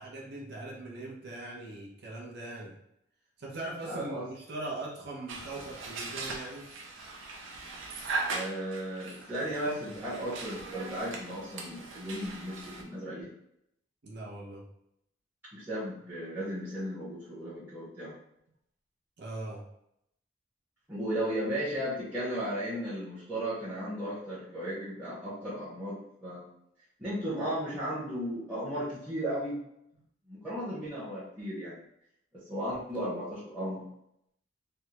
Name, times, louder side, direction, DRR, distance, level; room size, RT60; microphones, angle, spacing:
voice 1, 0.0-2.7 3.4-6.6 9.4-9.9 14.0-14.6 19.2-19.6, right 2 dB, 60° right, -3 dB, 0.8 m, -40 dB
voice 2, 3.8-4.2 8.3-13.3 15.5-18.2 20.9-26.5 27.0-29.6 30.3-31.8 32.3-33.9, equal, 10° right, -12 dB, 0.8 m, -35 dB
sound 1, 5.3-12.8, right 3 dB, 85° right, 0.6 m, -39 dB
3.4 x 2.2 x 2.9 m, 0.78 s
head